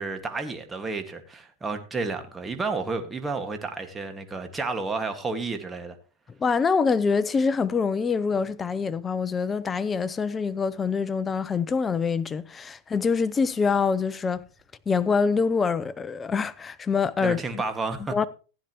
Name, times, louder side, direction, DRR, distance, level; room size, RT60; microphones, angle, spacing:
voice 1, 0.0-6.0 17.2-18.2, right 3 dB, 15° right, 1.8 m, -31 dB
voice 2, 6.4-14.4 14.9-17.6 18.1-18.3, left 5 dB, 20° left, 0.6 m, -25 dB
15.5 x 10.0 x 3.0 m
supercardioid pair, 125°, 0 cm